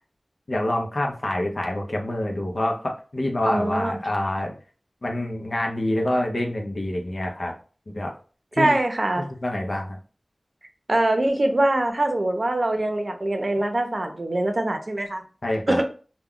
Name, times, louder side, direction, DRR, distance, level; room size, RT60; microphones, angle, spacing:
voice 1, 0.5-4.5 5.0-7.5 7.9-8.1 8.6-8.8 9.2-10.0 15.4-15.8, left 1 dB, 65° left, 1 dB, 0.5 m, -26 dB
voice 2, 3.4-4.0 8.6-9.3 10.9-15.2 15.7-15.8, right 1 dB, 60° right, 5 dB, 0.6 m, -23 dB
2.3 x 2.1 x 3.5 m, 0.37 s
wide cardioid pair, 40°, 0 cm